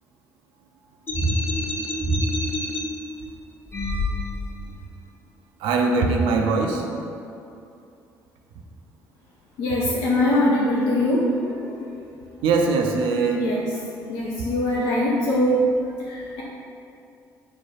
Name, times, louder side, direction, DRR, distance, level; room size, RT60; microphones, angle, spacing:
sound 1, 1.1-2.8 3.7-4.6, equal, 20° left, 0.9 m, -25 dB
voice 1, 5.6-6.8 12.4-13.4, right 4 dB, 65° right, 2 dB, 0.5 m, -21 dB
voice 2, 9.6-11.9 13.3-13.6 14.1-15.7 16.1-16.4, left 1 dB, 65° left, -5 dB, 0.6 m, -22 dB
5.7 x 2.3 x 4.1 m, 2.6 s
figure-of-eight pair, 50°, 10 cm